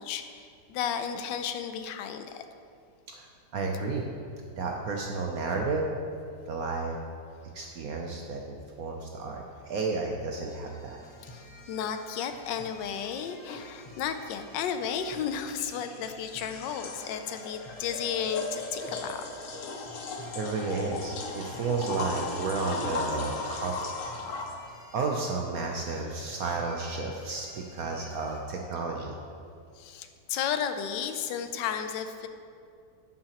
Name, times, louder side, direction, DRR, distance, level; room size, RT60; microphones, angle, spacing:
voice 1, 0.0-2.4 11.2-19.2 29.8-32.3, left 8 dB, 80° left, 8 dB, 1.2 m, -33 dB
voice 2, 3.5-4.1 4.6-5.9 6.5-7.0 7.5-11.0 20.3-23.8 24.9-29.2, right 3 dB, 65° right, 1 dB, 0.9 m, -32 dB
sound 1, 10.3-28.4, left 2 dB, 35° left, 0.4 m, -51 dB
sound 2, 13.5-13.6 15.3-24.6, left 3 dB, 60° left, 0.9 m, -37 dB
10.5 x 7.6 x 2.9 m, 2.4 s
omnidirectional pair, 2.0 m